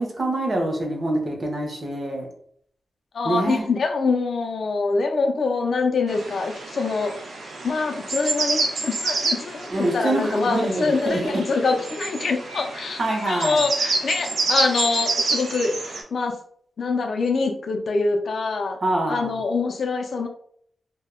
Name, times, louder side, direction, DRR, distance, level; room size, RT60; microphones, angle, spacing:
voice 1, 0.0-2.3 3.2-3.7 9.7-11.4 13.0-13.7 18.8-19.4, right 1 dB, 35° right, 1 dB, 0.6 m, -25 dB
voice 2, 3.1-7.1 7.6-13.0 13.3-15.7 16.1-16.3 16.8-18.8 19.1-20.3, left 4 dB, 60° left, 4 dB, 0.3 m, -24 dB
sound 1, 6.1-16.0, right 3 dB, 80° right, 0.5 m, -28 dB
2.1 x 2.0 x 3.5 m, 0.64 s
wide cardioid pair, 165°, 0 cm